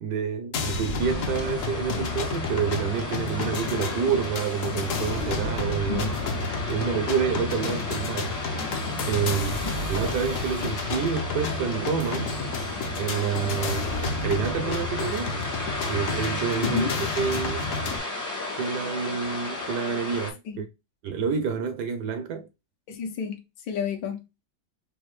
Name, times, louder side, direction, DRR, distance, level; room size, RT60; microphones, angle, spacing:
voice 1, 0.0-6.1 6.7-8.4 9.0-12.3 12.9-15.4 15.9-17.7 18.6-20.7 21.0-22.5, right 7 dB, 70° right, 1.0 m, -28 dB
sound 1, 0.5-18.0, left 3 dB, 60° left, 0.8 m, -31 dB
sound 2, 1.0-20.3, left 2 dB, 20° left, 0.5 m, -34 dB
voice 2, 22.9-23.4 23.7-24.2, left 6 dB, 75° left, 1.5 m, -30 dB
5.3 x 2.3 x 3.0 m
omnidirectional pair, 2.1 m